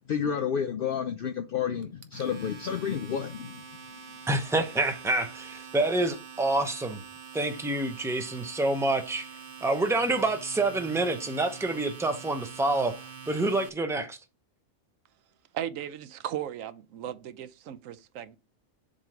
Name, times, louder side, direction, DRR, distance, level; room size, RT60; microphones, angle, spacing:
voice 1, 0.1-3.6, left 7 dB, 65° left, 0.5 m, -30 dB
Domestic sounds home sounds, 1.8-13.7, right 6 dB, 45° right, 0.8 m, -45 dB
voice 2, 4.3-7.0 7.3-9.3 9.6-12.9 13.3-14.2, right 2 dB, 5° right, 0.5 m, -27 dB
voice 3, 15.5-18.4, right 10 dB, 80° right, 1.0 m, -36 dB
7.5 x 3.0 x 5.0 m
omnidirectional pair, 1.4 m